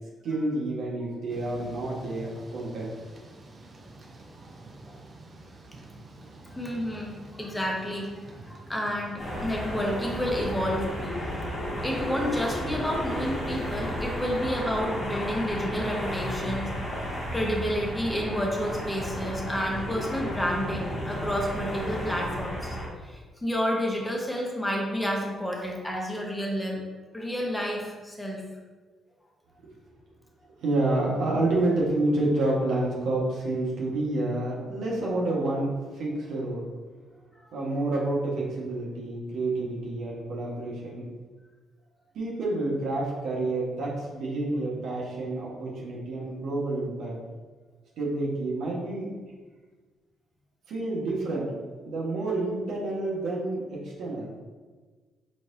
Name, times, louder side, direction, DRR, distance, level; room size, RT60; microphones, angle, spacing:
voice 1, 0.2-2.9 11.6-11.8 14.9-15.0 30.6-36.7 37.5-41.1 42.1-47.2 48.0-49.2 50.7-54.3, right 2 dB, 75° right, -5 dB, 1.2 m, -29 dB
Thunder / Rain, 1.3-11.5, right 2 dB, 40° right, 0.7 m, -48 dB
voice 2, 6.5-11.3 11.8-17.0 17.3-22.8 23.0-26.8 27.1-28.4 37.3-37.5, equal, 10° left, -1 dB, 1.0 m, -30 dB
sound 1, 9.2-22.9, equal, 35° left, 1.5 m, -33 dB
4.4 x 4.1 x 2.6 m, 1.4 s
cardioid pair, 90°, 0 cm